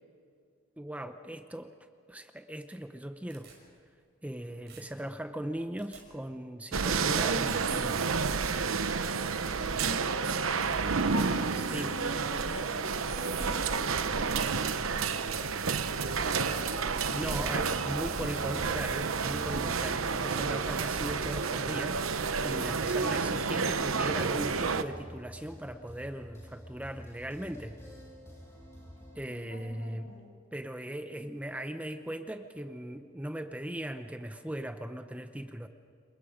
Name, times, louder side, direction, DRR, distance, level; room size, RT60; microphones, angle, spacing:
voice 1, 0.8-1.7 2.1-3.5 4.2-8.1 11.5-12.0 17.1-22.0 22.4-27.8 29.1-30.1 30.5-35.7, right 1 dB, 5° right, 8 dB, 0.8 m, -38 dB
sound 1, 3.3-4.4 4.7-6.0 11.1-11.5 11.8-12.8 13.6-13.7 14.4-14.5 15.1-15.3 15.8-16.2 17.3-17.4 17.9-18.0 18.3-18.5 18.9-19.0 20.0-20.6 20.9-21.4, right 6 dB, 55° right, 6.4 m, -58 dB
sound 2, 6.7-24.8, right 5 dB, 85° right, 1.0 m, -30 dB
voice 2, 9.9-12.7 13.0-16.8 17.2-18.1 18.3-18.6 29.3-30.3, left 1 dB, 70° left, 1 dB, 6.6 m, -45 dB
sound 3, 17.0-29.2, equal, 15° left, 7.6 m, -48 dB
28.0 x 23.0 x 5.1 m, 2.4 s
head